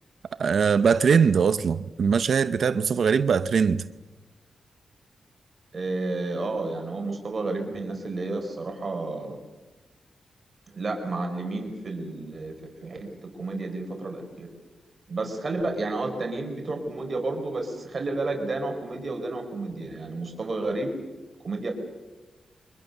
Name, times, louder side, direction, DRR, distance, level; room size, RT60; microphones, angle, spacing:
voice 1, 0.4-3.8, right 6 dB, 65° right, 0.7 m, -21 dB
voice 2, 5.7-9.4 10.7-12.5 12.8-13.1 13.4-14.5 15.1-21.0 21.4-21.8, right 2 dB, 35° right, 4.3 m, -31 dB
29.0 x 24.0 x 6.6 m
wide cardioid pair, 130°, 0 cm